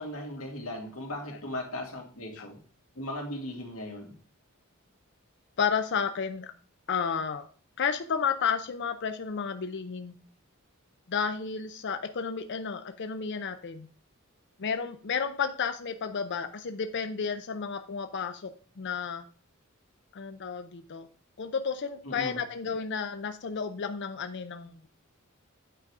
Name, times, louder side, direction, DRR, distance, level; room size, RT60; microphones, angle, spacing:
voice 1, 0.0-2.6 3.0-4.1 22.0-22.4, left 1 dB, 80° left, 0 dB, 2.4 m, -37 dB
voice 2, 5.6-6.5 6.9-7.5 7.8-10.2 11.1-13.9 14.6-19.3 20.1-21.1 21.4-24.9, left 6 dB, 55° left, 7 dB, 0.6 m, -32 dB
9.1 x 3.9 x 4.8 m, 0.43 s
head